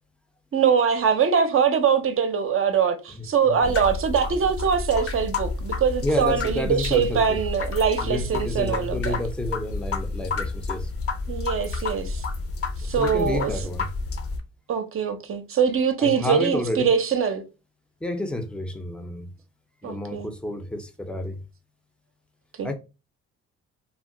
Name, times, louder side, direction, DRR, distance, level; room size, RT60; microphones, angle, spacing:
voice 1, 0.5-9.2 11.3-12.2 12.8-13.5 14.7-17.4 19.8-20.3 22.6-22.7, right 7 dB, 45° right, 0.6 m, -23 dB
voice 2, 3.2-3.7 6.0-7.4 8.0-10.9 13.0-13.9 16.0-16.9 18.0-19.3 19.8-21.4 22.6-22.7, left 1 dB, 5° left, 0.5 m, -30 dB
sound 1, 3.6-14.4, left 3 dB, 50° left, 0.6 m, -30 dB
2.3 x 2.1 x 3.7 m
cardioid pair, 90°, 30 cm